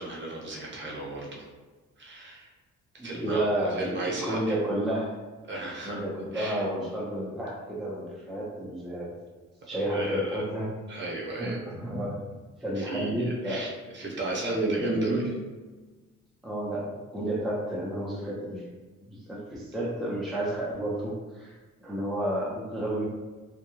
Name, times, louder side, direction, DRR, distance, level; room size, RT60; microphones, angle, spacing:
voice 1, 0.0-1.5 2.0-2.5 3.0-4.6 5.5-6.0 6.3-6.7 9.9-10.3 10.9-11.6 12.7-15.3, right 2 dB, 40° right, -3 dB, 0.8 m, -36 dB
voice 2, 3.0-5.2 5.8-9.1 9.7-10.7 11.4-12.2 12.6-13.7 14.4-15.4 16.4-18.7 19.1-21.6 21.8-23.1, right 1 dB, ahead, -6 dB, 0.5 m, -31 dB
2.2 x 2.1 x 3.0 m, 1.3 s
cardioid pair, 90°, 30 cm